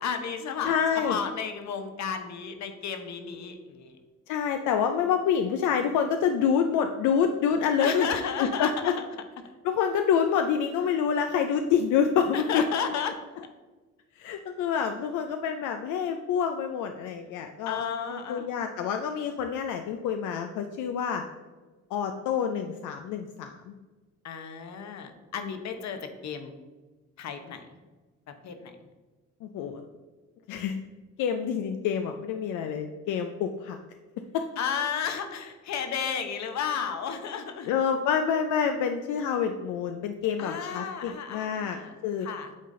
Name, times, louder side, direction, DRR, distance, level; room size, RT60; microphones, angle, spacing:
voice 1, 0.0-4.0 7.8-8.9 12.3-13.2 17.6-18.5 24.2-26.5 27.2-27.6 28.4-28.7 34.6-37.7 40.4-41.9 42.2-42.5, left 7 dB, 65° left, 7 dB, 0.9 m, -33 dB
voice 2, 0.6-1.2 4.3-8.1 8.4-8.9 9.6-12.6 14.2-17.8 18.1-21.2 21.9-23.7 29.4-29.8 30.5-30.8 31.2-33.8 34.3-34.4 37.7-41.8 42.0-42.3, left 7 dB, 85° left, 6 dB, 0.5 m, -27 dB
8.7 x 3.9 x 3.7 m, 1.3 s
cardioid pair, 90°, 30 cm